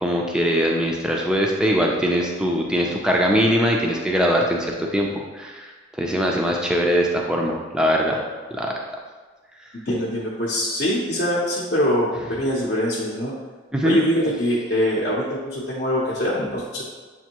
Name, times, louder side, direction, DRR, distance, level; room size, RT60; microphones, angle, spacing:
voice 1, 0.0-5.1 5.3-5.7 6.0-8.2 8.5-8.7 13.7-14.0, equal, 5° right, -1 dB, 0.4 m, -21 dB
voice 2, 9.9-13.3 13.8-16.8, equal, 50° left, -7 dB, 0.7 m, -23 dB
7.0 x 2.6 x 2.9 m, 1.4 s
head